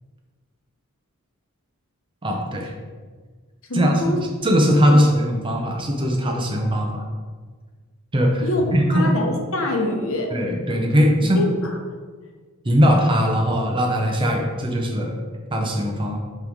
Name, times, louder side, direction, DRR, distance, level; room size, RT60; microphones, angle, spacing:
voice 1, 2.2-2.7 3.7-4.0 4.4-7.0 8.1-8.4 8.7-9.1 10.3-11.4 12.6-15.2 15.5-16.2, equal, 20° right, 1 dB, 0.7 m, -20 dB
voice 2, 3.7-4.2 8.4-8.7 8.9-10.3 11.4-11.8, left 1 dB, 60° left, 2 dB, 0.9 m, -24 dB
9.0 x 3.1 x 3.5 m, 1.5 s
head